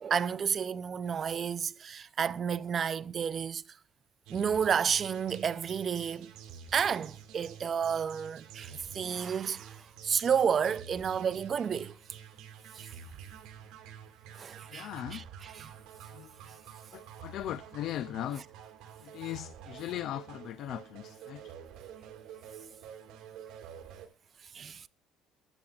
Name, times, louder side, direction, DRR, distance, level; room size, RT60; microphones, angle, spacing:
voice 1, 0.0-3.6 4.3-6.3 6.7-12.0 12.8-12.9 14.4-15.7 24.5-24.8, right 7 dB, 30° right, 0.4 m, -31 dB
sound 1, 4.3-24.1, right 8 dB, 85° right, 2.2 m, -49 dB
voice 2, 14.7-15.2 16.1-16.3 16.9-18.4 19.0-21.4, left 12 dB, 60° left, 0.4 m, -38 dB
19.5 x 7.1 x 2.4 m
cardioid pair, 150°, 0 cm